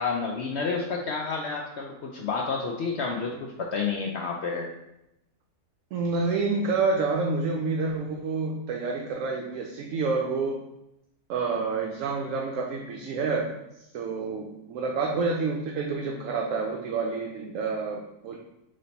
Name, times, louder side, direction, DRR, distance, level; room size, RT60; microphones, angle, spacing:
voice 1, 0.0-4.7, left 4 dB, 65° left, 0 dB, 0.7 m, -30 dB
voice 2, 5.9-10.6 11.3-18.4, right 4 dB, 70° right, 1 dB, 0.9 m, -28 dB
4.1 x 3.2 x 4.0 m, 0.88 s
omnidirectional pair, 1.5 m